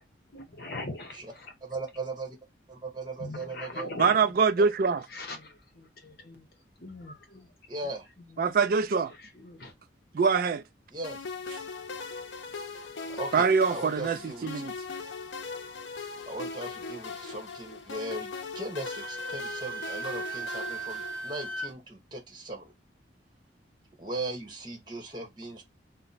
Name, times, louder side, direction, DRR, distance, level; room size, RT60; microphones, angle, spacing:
voice 1, 0.3-1.5 3.2-4.3 5.1-6.5 6.8-7.5 8.3-8.6 9.1-9.7, left 2 dB, 55° left, 0.9 m, -41 dB
voice 2, 1.6-2.4 2.7-3.9 7.7-8.1 10.9-11.2 13.1-14.8 16.3-22.7 24.0-25.6, right 2 dB, 25° right, 1.1 m, -38 dB
voice 3, 4.0-5.1 8.4-9.1 10.1-10.6 13.3-14.7, right 5 dB, 50° right, 0.3 m, -24 dB
sound 1, 11.0-21.7, left 4 dB, 85° left, 0.6 m, -40 dB
Wind instrument woodwind instrument, 18.9-21.7, right 3 dB, 5° left, 0.7 m, -37 dB
2.9 x 2.2 x 4.0 m
head